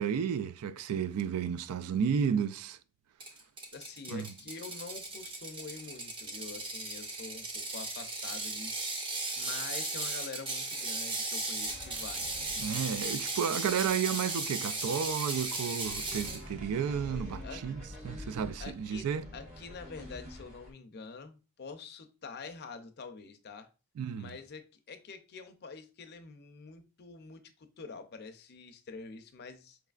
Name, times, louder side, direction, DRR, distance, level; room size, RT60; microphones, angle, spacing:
voice 1, 0.0-2.8 4.1-4.3 12.6-19.2 24.0-24.4, right 7 dB, 80° right, 0.3 m, -32 dB
Ratchet pawl, 3.2-16.4, right 2 dB, 25° right, 0.6 m, -36 dB
voice 2, 3.7-8.8 9.4-12.3 17.4-17.6 17.9-18.1 18.6-23.7 24.1-29.8, left 4 dB, 45° left, 0.5 m, -46 dB
sound 1, 11.6-20.7, left 1 dB, 60° right, 1.6 m, -47 dB
4.7 x 3.2 x 2.3 m
head